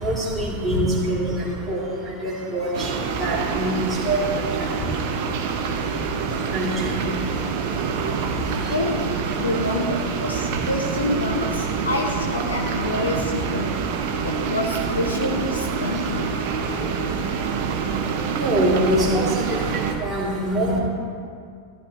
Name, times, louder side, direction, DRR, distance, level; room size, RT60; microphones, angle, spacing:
voice 1, 0.0-1.4 1.7-1.8 2.2-2.9 3.2-3.7 4.1-4.2 6.5-6.7 18.3-19.4 20.0-20.8, right 1 dB, 5° right, -7 dB, 3.2 m, -23 dB
sound 1, 2.7-19.9, right 6 dB, 45° right, 1.1 m, -26 dB
voice 2, 8.7-13.8 14.2-16.3, left 2 dB, 75° left, 1 dB, 1.0 m, -27 dB
14.5 x 11.5 x 3.3 m, 2.2 s
figure-of-eight pair, 90°, 0 cm